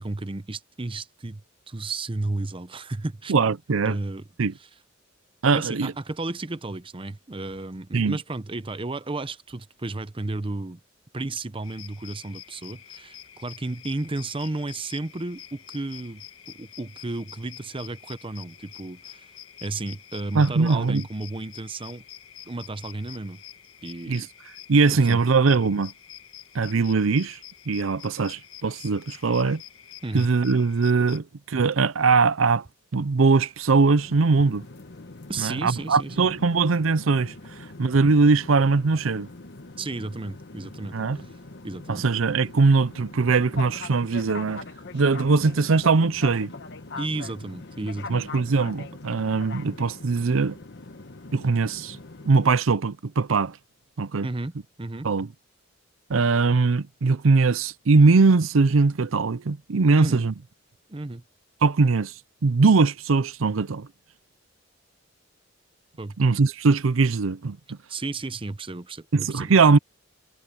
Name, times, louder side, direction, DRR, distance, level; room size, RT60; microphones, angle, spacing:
voice 1, 0.0-3.3 3.8-4.2 5.5-10.8 11.1-19.3 19.6-22.0 22.5-23.4 23.8-24.3 24.9-25.2 30.0-30.3 35.3-36.3 39.8-41.3 41.6-42.1 47.0-48.2 54.2-55.1 59.9-60.2 60.9-61.2 66.0-66.2 67.9-69.5, right 2 dB, 25° right, 0.8 m, -33 dB
voice 2, 3.3-4.0 4.4-4.5 5.4-5.9 7.9-8.2 20.3-21.0 24.1-24.3 24.7-25.9 26.5-27.4 27.7-29.6 30.1-32.6 32.9-34.6 35.4-37.3 37.8-39.3 40.9-41.2 41.9-44.6 44.9-46.5 48.1-50.6 51.3-52.0 52.2-53.6 54.0-54.3 55.0-55.3 56.1-60.3 61.6-62.1 62.4-63.9 66.2-67.8 69.1-69.8, right 4 dB, 90° right, 0.6 m, -21 dB
sound 1, 11.6-31.2, left 11 dB, 80° left, 1.9 m, -46 dB
sound 2, 33.6-52.5, left 3 dB, 60° left, 1.2 m, -42 dB
head